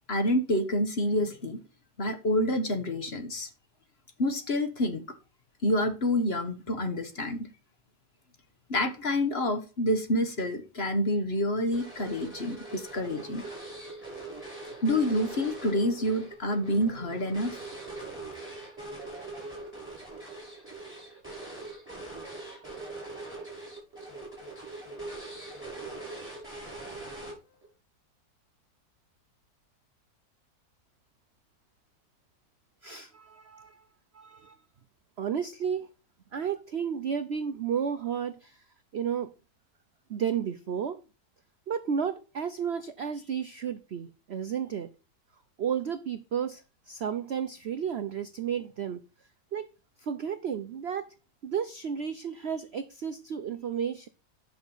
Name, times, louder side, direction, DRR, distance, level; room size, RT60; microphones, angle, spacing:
voice 1, 0.1-1.6 2.0-3.5 4.2-5.0 5.6-7.5 8.7-13.5 14.8-17.6, left 1 dB, 40° left, 8 dB, 1.3 m, -28 dB
sound 1, 11.7-27.7, right 2 dB, 5° right, 6.3 m, -42 dB
voice 2, 32.8-33.8 34.1-34.6 35.2-35.9 36.3-38.6 38.9-39.3 40.1-41.0 41.7-44.9 45.6-49.0 49.5-49.7 50.0-51.1 51.4-54.1, right 7 dB, 60° right, 10 dB, 0.7 m, -32 dB
9.7 x 6.1 x 5.5 m, 0.32 s
omnidirectional pair, 1.8 m